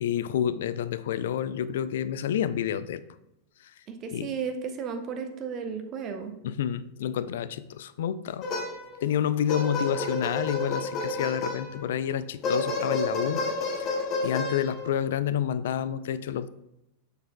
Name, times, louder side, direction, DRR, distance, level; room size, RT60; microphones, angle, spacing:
voice 1, 0.0-3.0 4.1-4.3 6.4-8.4 9.0-13.9 14.2-16.5, left 9 dB, 60° left, 15 dB, 0.3 m, -29 dB
voice 2, 3.9-6.4, right 6 dB, 35° right, 6 dB, 0.8 m, -34 dB
sound 1, 8.4-9.0 9.5-11.9 12.4-15.0, left 2 dB, 35° left, 0.9 m, -30 dB
6.5 x 6.5 x 2.2 m, 0.86 s
figure-of-eight pair, 90°, 0 cm